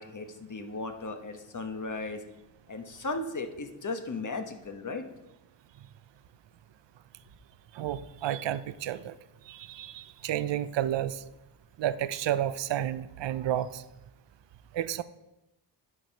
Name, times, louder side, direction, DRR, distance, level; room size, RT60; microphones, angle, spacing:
voice 1, 0.0-2.2 2.7-5.0, left 3 dB, 40° left, 6 dB, 1.2 m, -36 dB
voice 2, 7.7-9.1 9.5-11.2 11.8-13.8 14.7-15.0, right 11 dB, 70° right, 15 dB, 0.5 m, -31 dB
11.0 x 4.6 x 5.2 m, 0.96 s
cardioid pair, 50°, 45 cm